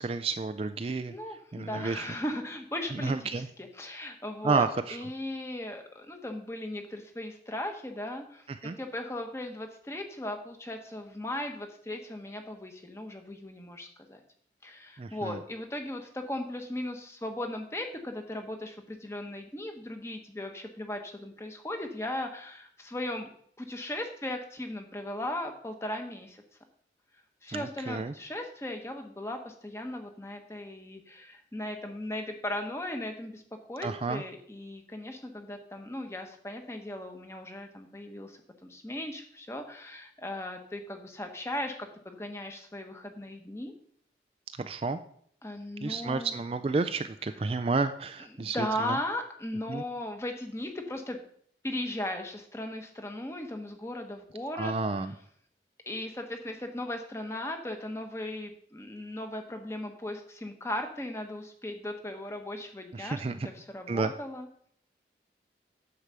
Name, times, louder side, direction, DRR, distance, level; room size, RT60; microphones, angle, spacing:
voice 1, 0.0-1.1 1.5-2.1 3.0-3.5 4.4-5.0 8.6-8.8 15.0-15.4 27.5-28.1 33.8-34.2 44.6-45.0 45.8-49.0 49.7-49.8 54.6-55.1 62.9-63.3 63.9-64.1, right 4 dB, 30° right, 10 dB, 0.3 m, -30 dB
voice 2, 1.1-14.2 14.6-23.3 23.6-26.4 27.4-33.4 33.7-43.7 45.4-46.4 47.3-47.4 48.2-51.2 51.6-54.7 55.1-55.2 55.9-64.5, left 1 dB, 15° left, 4 dB, 1.0 m, -37 dB
9.7 x 4.8 x 6.7 m, 0.62 s
head